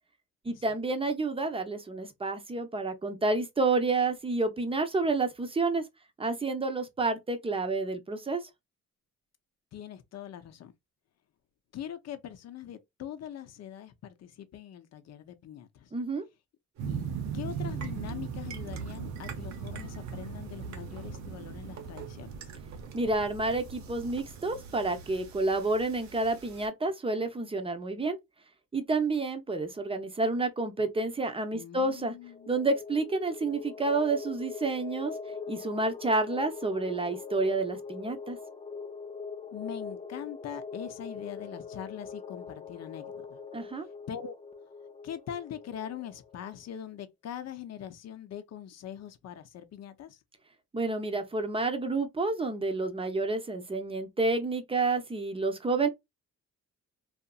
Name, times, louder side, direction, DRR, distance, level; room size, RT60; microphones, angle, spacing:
voice 1, 0.4-5.8 6.2-8.5 15.9-16.2 22.9-28.2 28.7-32.1 32.5-35.1 35.5-38.4 43.5-43.9 50.7-55.9, right 3 dB, 20° right, 0.6 m, -29 dB
voice 2, 9.7-10.7 11.7-15.9 16.8-17.0 17.3-22.5 31.5-32.5 39.5-43.4 44.1-44.4 45.0-50.2, left 9 dB, 60° left, 0.6 m, -42 dB
sound 1, 16.7-26.7, right 5 dB, 65° right, 0.9 m, -49 dB
sound 2, 16.8-25.2, right 6 dB, 90° right, 0.6 m, -39 dB
sound 3, 32.2-46.6, left 5 dB, 20° left, 0.5 m, -42 dB
2.8 x 2.4 x 2.3 m
cardioid pair, 90°, 30 cm